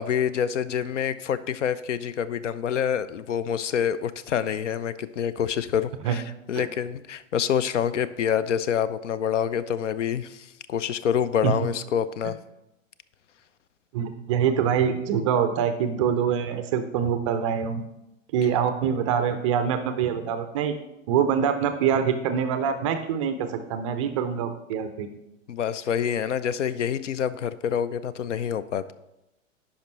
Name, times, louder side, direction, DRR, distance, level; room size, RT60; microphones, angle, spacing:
voice 1, 0.0-12.4 25.5-28.9, left 8 dB, 65° left, 16 dB, 0.5 m, -27 dB
voice 2, 13.9-17.8 18.3-20.7 21.1-25.1, right 8 dB, 25° right, 9 dB, 0.4 m, -25 dB
10.0 x 5.1 x 3.1 m, 0.91 s
figure-of-eight pair, 100°, 39 cm